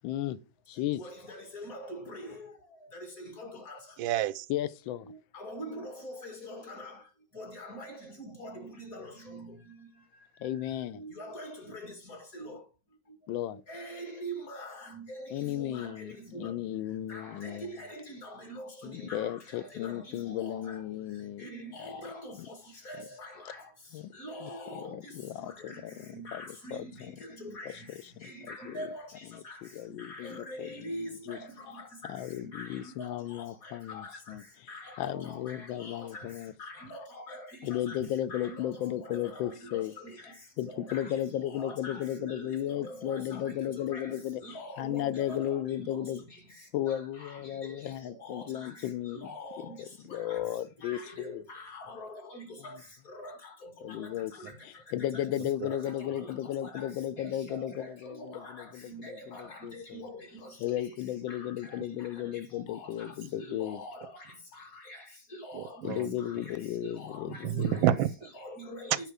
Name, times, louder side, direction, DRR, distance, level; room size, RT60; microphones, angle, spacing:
voice 1, 0.0-0.4 0.7-1.0 4.5-5.1 10.4-11.0 13.3-13.6 15.3-17.7 18.8-21.5 21.8-21.9 22.4-22.5 23.9-24.1 24.4-24.5 24.8-27.1 28.2-28.8 29.7-31.4 32.1-34.4 35.0-36.5 37.6-39.9 40.6-44.4 44.8-46.2 46.7-49.3 49.6-49.7 50.1-51.4 53.8-54.3 54.6-60.0 60.6-63.8 65.8-67.8, left 12 dB, 75° left, 1.3 m, -35 dB
voice 2, 1.0-2.4 2.9-3.1 3.4-3.8 5.3-6.9 7.4-9.4 11.0-11.9 12.4-12.6 13.7-15.3 15.6-16.5 17.1-19.3 19.8-20.0 20.4-20.7 21.5-22.3 22.9-23.6 24.2-25.0 26.1-26.9 27.4-27.7 28.5-29.0 29.4-29.5 30.1-31.4 31.7-31.8 32.5-32.7 33.0-33.1 33.9-34.1 34.7-35.4 35.8-36.2 36.6-37.5 37.9-38.0 38.3-38.6 39.0-39.8 40.7-41.0 41.5-41.9 42.2-42.5 42.8-43.5 43.9-44.1 44.4-45.6 45.9-46.0 46.9-47.0 47.2-47.4 48.3-48.4 49.2-49.8 50.8-52.8 53.1-53.4 54.0-54.1 54.4-54.5 56.6-56.7 57.5-58.5 58.9-59.4 59.9-60.1 62.7-62.9 63.5-64.0 65.4-65.8 67.0-67.3 68.3-68.9, equal, 45° left, 2.5 m, -43 dB
voice 3, 4.0-4.5 54.4-54.5 55.6-55.7 65.5-66.2 67.3-68.3 68.9-69.0, right 11 dB, 90° right, 1.5 m, -29 dB
9.2 x 5.8 x 4.8 m
omnidirectional pair, 2.2 m